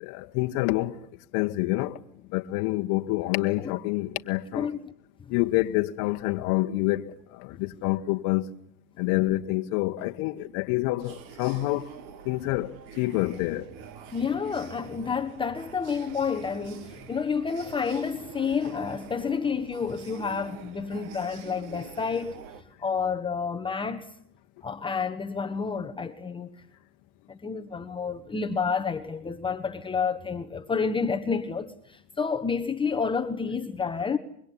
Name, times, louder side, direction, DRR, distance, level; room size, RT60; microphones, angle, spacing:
voice 1, 0.0-0.9 1.3-2.0 2.3-4.7 5.3-7.1 7.6-8.4 9.0-11.9 12.3-13.6, left 18 dB, 40° left, 1.3 m, -27 dB
sound 1, 11.0-22.6, right 6 dB, 45° right, 2.8 m, -46 dB
voice 2, 14.1-22.4 22.8-24.1 24.6-26.5 27.3-34.2, left 5 dB, 10° left, 1.2 m, -29 dB
25.0 x 23.0 x 10.0 m
supercardioid pair, 145°, 47 cm